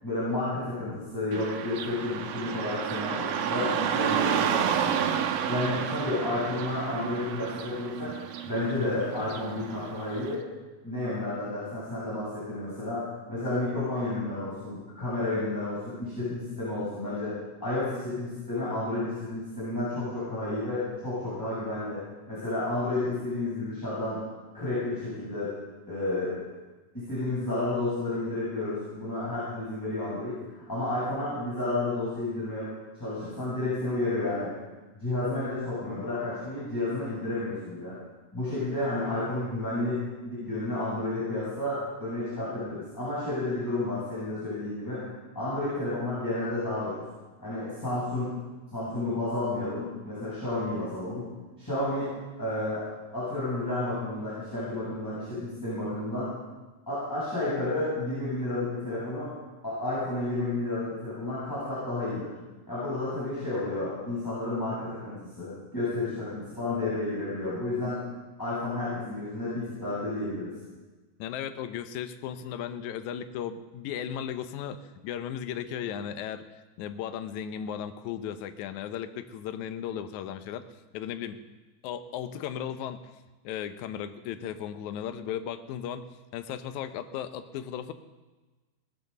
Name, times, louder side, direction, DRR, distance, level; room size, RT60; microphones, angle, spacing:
voice 1, 0.0-5.0 5.5-8.1 8.4-10.4 10.8-17.3 17.6-22.0 22.3-24.2 24.5-25.5 25.9-26.4 26.9-30.4 30.7-32.7 33.0-34.5 34.9-37.9 38.3-45.1 45.3-47.0 47.4-48.3 48.7-51.3 51.6-52.1 52.4-52.8 53.1-56.3 56.9-59.3 59.6-62.3 62.7-68.0 68.4-70.5, left 2 dB, 5° left, -11 dB, 6.7 m, -31 dB
Car passing by / Traffic noise roadway noise, 1.3-10.3, right 9 dB, 75° right, 2.3 m, -31 dB
voice 2, 71.2-80.6 80.9-81.4 81.8-83.0 83.4-87.9, left 9 dB, 75° left, 9 dB, 1.8 m, -36 dB
19.0 x 8.8 x 6.7 m, 1.2 s
omnidirectional pair, 4.3 m